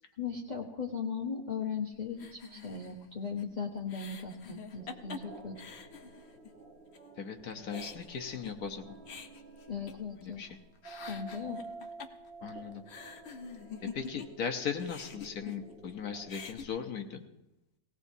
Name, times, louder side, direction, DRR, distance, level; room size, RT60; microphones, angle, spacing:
voice 1, 0.2-5.6 9.7-10.4 11.1-11.6, left 6 dB, 30° left, -1 dB, 0.9 m, -37 dB
sound 1, 2.2-6.6 6.9-7.0 7.4-10.5 10.7-14.5 14.8-15.9 16.2-16.7, left 6 dB, 75° left, 0.6 m, -47 dB
sound 2, 4.8-16.5, right 4 dB, 40° right, 1.1 m, -51 dB
voice 2, 7.2-9.0 10.2-10.6 12.4-12.8 13.8-17.2, left 7 dB, 55° left, 5 dB, 1.2 m, -38 dB
19.0 x 17.5 x 2.7 m, 0.94 s
omnidirectional pair, 2.2 m